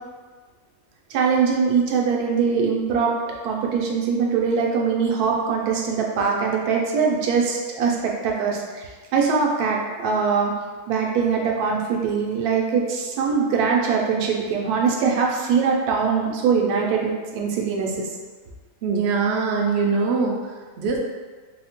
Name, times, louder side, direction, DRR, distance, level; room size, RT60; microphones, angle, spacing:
voice 1, 1.1-3.1 3.4-8.8 9.1-10.5 10.9-18.1, right 5 dB, 85° right, -1 dB, 1.1 m, -22 dB
voice 2, 18.8-21.0, right 4 dB, 70° right, 0 dB, 0.6 m, -23 dB
4.0 x 2.1 x 2.9 m, 1.4 s
omnidirectional pair, 1.6 m